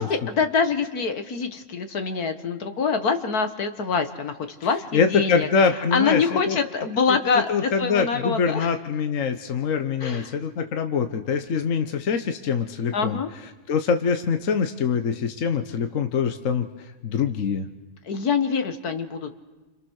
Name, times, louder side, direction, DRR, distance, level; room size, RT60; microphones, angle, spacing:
voice 1, 0.0-4.3 4.6-5.5 5.9-8.7 10.0-10.4 12.9-13.3 18.0-19.4, left 5 dB, 75° left, 8 dB, 2.0 m, -25 dB
voice 2, 4.9-6.6 7.1-13.2 13.7-16.7 17.0-17.7, left 6 dB, 55° left, 7 dB, 1.4 m, -24 dB
30.0 x 26.5 x 6.5 m, 1.2 s
omnidirectional pair, 1.6 m